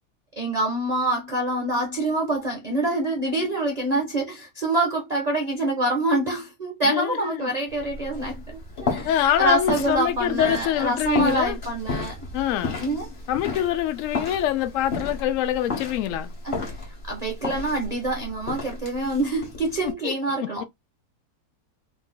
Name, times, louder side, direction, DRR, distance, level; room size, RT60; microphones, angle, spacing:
voice 1, 0.4-12.2 12.8-13.1 16.4-16.6 17.0-20.6, right 2 dB, 45° right, 0.5 m, -26 dB
voice 2, 6.8-7.5 9.0-11.6 12.3-12.8 13.3-16.3 19.8-20.1 20.4-20.6, left 11 dB, 75° left, 0.7 m, -25 dB
sound 1, 7.7-19.9, left 3 dB, 35° left, 1.2 m, -33 dB
3.9 x 2.7 x 2.2 m
omnidirectional pair, 1.8 m